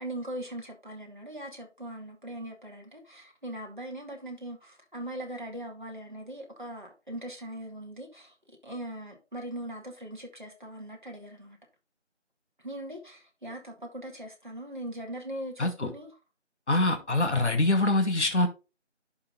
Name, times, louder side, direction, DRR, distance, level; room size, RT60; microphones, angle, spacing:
voice 1, 0.0-11.6 12.6-16.2 16.9-17.0, right 1 dB, 40° right, 2.1 m, -40 dB
voice 2, 15.6-15.9 16.7-18.5, left 2 dB, 65° left, 1.4 m, -24 dB
11.0 x 3.8 x 3.8 m
figure-of-eight pair, 180°, 36 cm